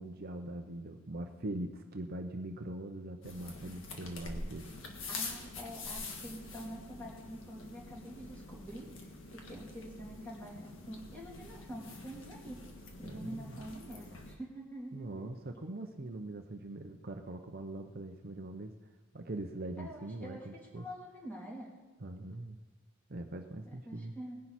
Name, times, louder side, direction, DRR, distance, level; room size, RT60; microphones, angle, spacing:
voice 1, 0.0-4.7 13.0-13.7 14.9-18.8 19.1-20.9 22.0-22.6 23.1-24.1, right 1 dB, 45° right, 5 dB, 0.7 m, -42 dB
sound 1, 3.2-14.4, left 3 dB, 65° left, 1.8 m, -46 dB
voice 2, 5.1-12.6 13.0-15.3 19.8-20.5 20.7-21.7 23.8-24.4, equal, 10° left, -4 dB, 3.2 m, -46 dB
18.5 x 10.5 x 4.2 m, 1.3 s
head